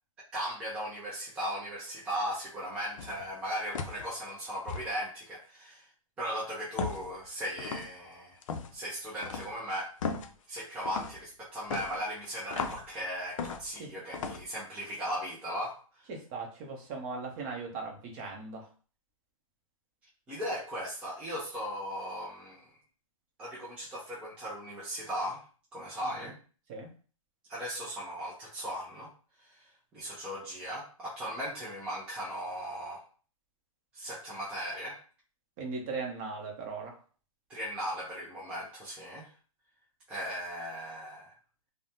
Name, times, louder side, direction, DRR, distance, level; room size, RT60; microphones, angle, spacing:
voice 1, 0.3-5.9 6.2-8.4 8.7-9.9 10.5-15.8 20.3-22.7 23.4-25.4 25.7-26.3 27.5-29.1 29.5-33.0 33.9-35.0 37.5-39.3 40.1-41.3, equal, 5° right, -6 dB, 0.4 m, -37 dB
sound 1, 3.0-3.3 3.7-4.1 4.7-4.9 6.8-7.1 7.6-7.9 8.4-8.7 9.2-9.5 10.0-10.3 10.8-11.2 11.7-12.9 13.4-13.8 14.1-14.4, left 5 dB, 65° left, 0.4 m, -36 dB
voice 2, 16.1-18.7 26.2-26.3 26.7-26.9 35.6-37.0, right 4 dB, 30° right, 1 dB, 0.7 m, -38 dB
3.3 x 2.1 x 2.7 m, 0.39 s
hypercardioid pair, 150°, 18 cm